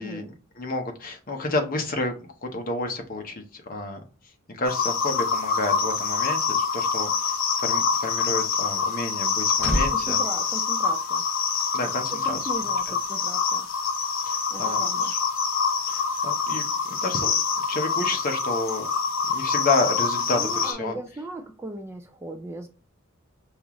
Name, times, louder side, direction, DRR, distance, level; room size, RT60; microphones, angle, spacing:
voice 1, 0.0-2.1 2.4-4.0 4.5-10.2 11.7-12.5 12.9-13.0 14.3-14.8 15.0-15.2 15.9-17.4 17.7-18.9 19.3-21.0, left 2 dB, 45° left, 0.8 m, -30 dB
sound 1, 4.7-20.7, left 5 dB, 70° left, 0.7 m, -26 dB
sound 2, 9.1-11.5 11.8-12.1, equal, 10° left, 2.0 m, -32 dB
voice 2, 9.9-11.2 12.2-13.7 14.5-15.1 20.3-22.7, right 1 dB, 10° right, 0.3 m, -37 dB
5.3 x 2.4 x 2.9 m
head